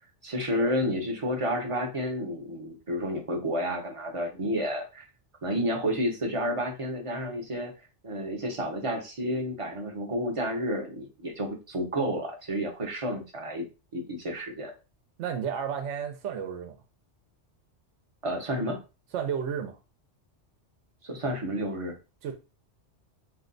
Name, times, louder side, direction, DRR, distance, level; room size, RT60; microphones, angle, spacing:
voice 1, 0.2-5.1 5.4-7.7 8.0-13.6 13.9-14.7 18.2-18.8 21.0-22.0, equal, 35° right, 0.6 m, -30 dB
voice 2, 15.2-16.8 19.1-19.8 22.2-22.3, right 8 dB, 85° right, 0.9 m, -32 dB
2.6 x 2.2 x 3.7 m
omnidirectional pair, 1.2 m